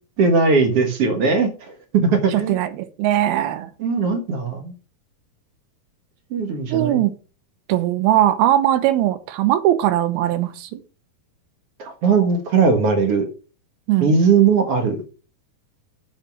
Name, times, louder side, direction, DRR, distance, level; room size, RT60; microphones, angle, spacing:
voice 1, 0.2-2.6 3.8-4.7 6.3-7.0 11.8-13.3 14.0-15.0, right 5 dB, 55° right, 5 dB, 1.8 m, -19 dB
voice 2, 2.3-3.7 6.7-7.1 7.7-10.8 13.9-14.2, right 13 dB, 85° right, 11 dB, 2.8 m, -20 dB
9.0 x 5.6 x 5.9 m, 0.35 s
omnidirectional pair, 4.3 m